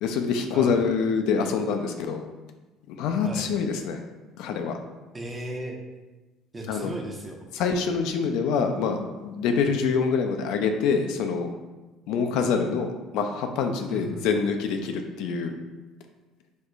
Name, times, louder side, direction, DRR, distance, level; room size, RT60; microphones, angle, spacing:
voice 1, 0.0-2.2 2.9-4.0 4.4-4.8 6.7-6.9 7.5-11.5 12.1-15.5, left 5 dB, 75° left, 5 dB, 0.3 m, -25 dB
voice 2, 5.1-5.8 6.5-7.4 9.5-9.7 13.9-14.3, right 1 dB, 25° right, 1 dB, 0.7 m, -36 dB
4.4 x 2.2 x 2.4 m, 1.2 s
supercardioid pair, 75°, 0 cm